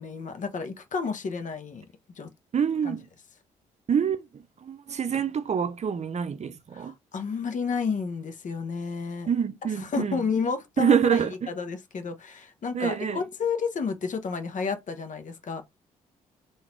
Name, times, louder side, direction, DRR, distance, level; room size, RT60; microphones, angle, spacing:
voice 1, 0.0-1.9 2.2-2.3 2.8-3.0 6.7-9.3 9.9-11.2 11.5-15.6, left 5 dB, 50° left, 1.0 m, -31 dB
voice 2, 2.5-3.1 3.9-6.9 9.3-10.2 10.8-11.5 12.7-13.2, right 7 dB, 45° right, 0.6 m, -26 dB
3.9 x 2.7 x 4.5 m
supercardioid pair, 50°, 16 cm